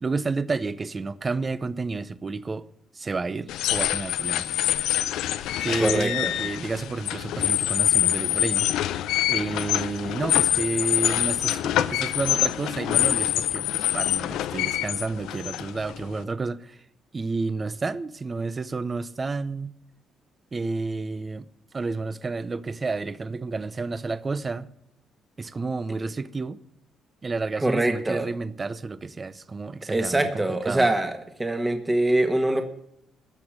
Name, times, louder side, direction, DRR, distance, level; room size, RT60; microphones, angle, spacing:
voice 1, 0.0-2.7 2.9-4.6 5.6-8.7 9.2-16.8 17.1-19.7 20.5-21.5 21.7-24.7 25.4-26.6 27.2-30.9, right 3 dB, 30° right, 0.7 m, -30 dB
sound 1, 3.5-16.2, left 13 dB, 90° left, 0.5 m, -25 dB
voice 2, 5.8-6.4 27.6-28.3 29.9-31.1 31.4-32.7, right 1 dB, 15° right, 1.4 m, -23 dB
15.0 x 6.2 x 8.7 m
cardioid pair, 90°, 0 cm